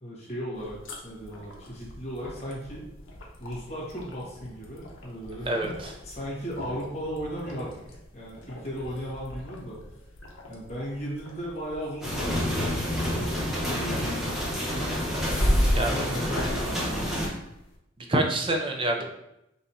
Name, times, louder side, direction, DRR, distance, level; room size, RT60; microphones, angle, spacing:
voice 1, 0.0-2.8 3.4-9.8 10.5-14.9 15.6-17.0, equal, 35° left, -6 dB, 1.5 m, -36 dB
sound 1, 0.5-17.7, equal, 80° left, 0.9 m, -35 dB
voice 2, 5.5-5.9 15.1-15.9 18.0-19.0, right 1 dB, 25° right, 2 dB, 0.5 m, -28 dB
sound 2, 12.0-17.3, equal, ahead, 0.9 m, -29 dB
5.4 x 2.9 x 2.7 m, 0.85 s
head